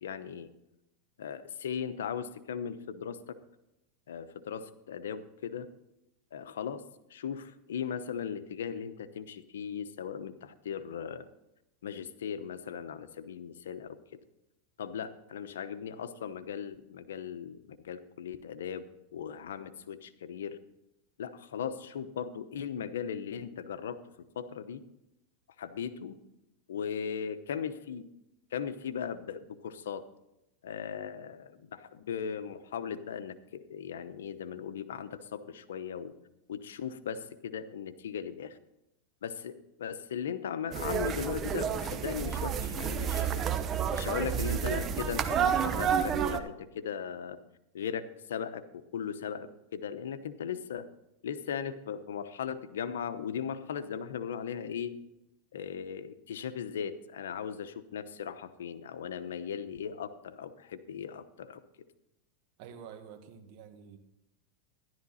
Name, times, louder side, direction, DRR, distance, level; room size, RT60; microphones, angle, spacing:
voice 1, 0.0-0.5 1.2-3.2 4.1-5.7 6.3-6.8 7.1-11.2 11.8-14.0 14.8-18.8 19.1-20.6 21.2-24.0 24.4-24.8 25.6-26.1 26.7-28.0 28.5-30.0 30.6-36.1 36.5-38.6 39.2-43.5 43.9-47.4 47.7-48.0 48.3-48.6 48.9-50.8 51.2-55.0 55.5-61.6, left 7 dB, 90° left, 11 dB, 0.9 m, -38 dB
sound 1, 40.7-46.4, right 8 dB, 30° right, 0.9 m, -30 dB
voice 2, 62.6-64.0, right 7 dB, 55° right, 7 dB, 1.7 m, -48 dB
12.5 x 11.5 x 4.2 m, 0.87 s
supercardioid pair, 130°, 0 cm